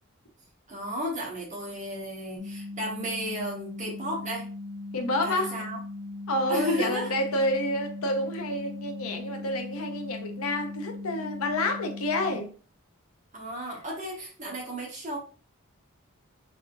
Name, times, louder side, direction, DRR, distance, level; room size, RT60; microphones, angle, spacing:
voice 1, 0.7-4.5 5.2-5.8 6.5-7.1 13.3-15.2, equal, 35° right, 1.3 m, -33 dB
sound 1, 2.4-12.4, left 2 dB, 80° right, 1.1 m, -39 dB
voice 2, 4.9-5.6 6.3-12.5, left 1 dB, 80° left, 0.7 m, -29 dB
3.6 x 3.4 x 2.5 m
head